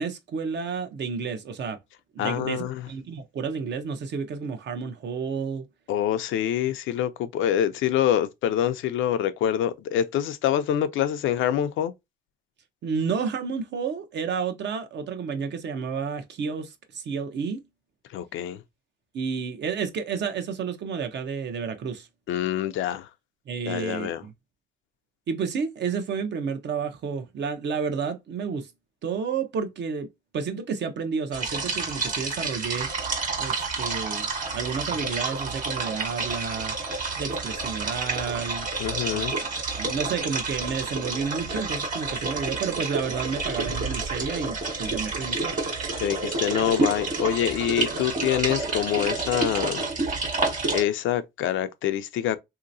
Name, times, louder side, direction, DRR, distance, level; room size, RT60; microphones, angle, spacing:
voice 1, 0.0-1.8 2.1-5.7 6.7-6.8 12.8-17.6 19.1-22.1 23.5-24.3 25.3-28.7 29.0-30.1 30.3-32.9 33.4-36.8 37.2-38.7 39.1-39.5 39.8-45.6, right 6 dB, 60° right, 0.8 m, -31 dB
voice 2, 2.2-2.9 5.9-11.9 18.1-18.6 22.3-23.1 23.7-24.2 38.8-39.3 46.0-49.8 50.3-52.4, left 10 dB, 80° left, 0.5 m, -26 dB
sound 1, 31.3-50.8, right 3 dB, 40° right, 1.4 m, -29 dB
3.2 x 2.8 x 2.6 m
cardioid pair, 90°, 20 cm